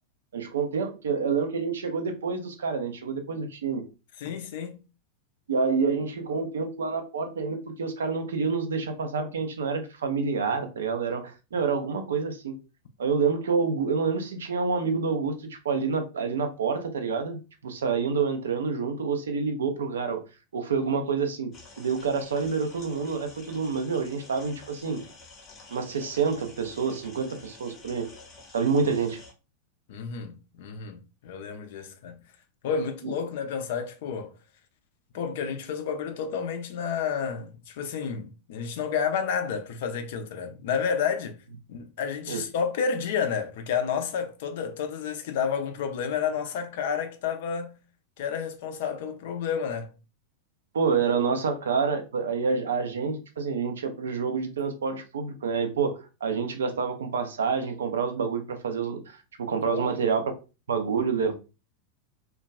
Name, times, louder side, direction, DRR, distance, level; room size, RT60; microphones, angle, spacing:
voice 1, 0.3-3.8 5.5-12.5 13.0-20.2 20.5-25.0 25.7-28.1 28.5-29.2 33.0-33.1 42.3-42.4 50.7-60.2 60.7-61.3, right 5 dB, 65° right, 0.4 m, -28 dB
voice 2, 4.2-4.8 29.9-32.2 32.6-34.3 35.1-41.4 41.7-47.8 48.2-49.9 59.6-59.9, left 6 dB, 55° left, 0.4 m, -30 dB
sound 1, 21.5-29.3, left 3 dB, 30° left, 0.7 m, -49 dB
2.2 x 2.2 x 2.5 m
figure-of-eight pair, 90°, 0 cm